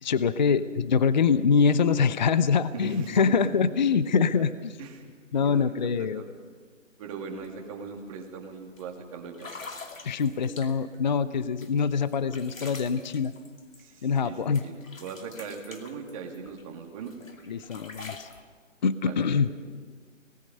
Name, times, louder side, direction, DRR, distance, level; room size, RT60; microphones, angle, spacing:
voice 1, 0.0-4.7 5.3-6.2 10.0-13.3 14.0-14.7 17.5-18.3 18.8-19.5, left 6 dB, 35° left, 15 dB, 0.6 m, -24 dB
voice 2, 2.7-3.7 4.2-4.5 4.8-6.3 7.0-9.5 13.8-17.1 19.0-19.5, right 5 dB, 25° right, 2 dB, 2.5 m, -40 dB
sound 1, 7.3-7.5 7.8-8.1 8.8-8.9 9.3-11.0 11.6-14.3 14.5-16.6 17.0-18.4, left 3 dB, 90° left, 2.6 m, -45 dB
26.5 x 19.5 x 5.4 m, 1.5 s
hypercardioid pair, 155°, 38 cm